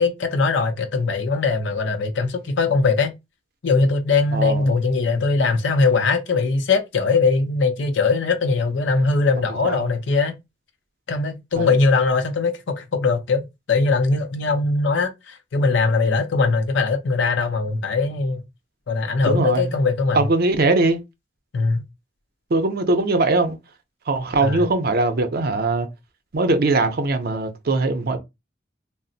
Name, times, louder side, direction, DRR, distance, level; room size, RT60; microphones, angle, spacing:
voice 1, 0.0-3.1 3.6-10.4 11.1-18.4 18.9-20.3 21.5-21.8 24.4-24.7, left 4 dB, 75° left, 0.5 m, -21 dB
voice 2, 4.3-4.7 9.6-9.9 11.6-11.8 19.2-19.8 20.1-21.0 22.5-23.6 24.1-25.9 26.3-28.2, right 2 dB, 55° right, 0.6 m, -21 dB
2.4 x 2.0 x 3.9 m
head